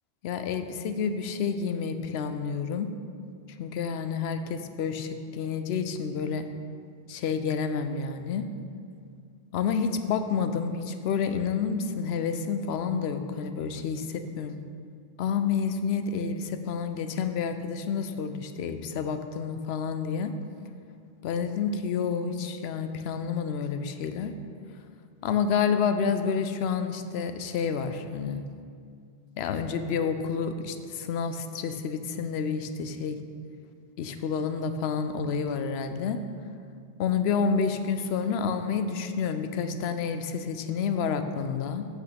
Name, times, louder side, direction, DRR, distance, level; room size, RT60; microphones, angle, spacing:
voice 1, 0.2-2.9 3.6-6.5 7.1-8.5 9.5-14.6 15.2-20.3 21.2-24.3 25.2-28.4 29.4-33.2 34.0-36.2 37.0-41.9, left 6 dB, 75° left, 9 dB, 0.8 m, -29 dB
8.2 x 6.0 x 5.2 m, 2.3 s
omnidirectional pair, 1.1 m